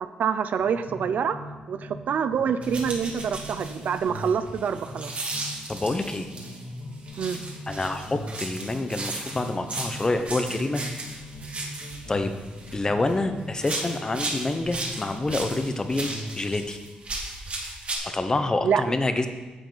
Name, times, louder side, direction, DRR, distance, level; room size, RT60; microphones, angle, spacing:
voice 1, 0.0-1.4 1.7-5.1 7.2-7.4 18.6-18.8, right 7 dB, 65° right, 11 dB, 0.5 m, -26 dB
sound 1, 0.6-2.0 2.3-6.0 6.3-10.0 10.3-14.0 14.3-16.4, left 1 dB, 85° left, 3.0 m, -40 dB
sound 2, 2.6-6.6 7.1-13.2 13.6-18.0, right 2 dB, 45° right, 1.8 m, -36 dB
voice 2, 5.7-6.3 7.7-10.8 12.1-12.3 12.7-16.8 18.0-19.3, left 2 dB, 25° left, 8 dB, 0.8 m, -27 dB
9.8 x 7.1 x 4.0 m, 1.2 s
cardioid pair, 85°, 3 cm